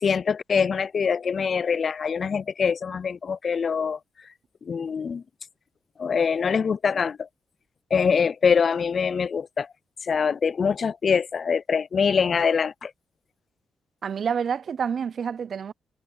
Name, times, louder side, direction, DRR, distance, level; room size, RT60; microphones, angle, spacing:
voice 1, 0.0-4.3 4.6-5.2 6.0-7.3 7.9-9.7 10.0-12.9, left 6 dB, 55° left, 0.4 m, -24 dB
voice 2, 14.0-15.7, right 7 dB, 60° right, 0.5 m, -28 dB
supercardioid pair, 60°, 0 cm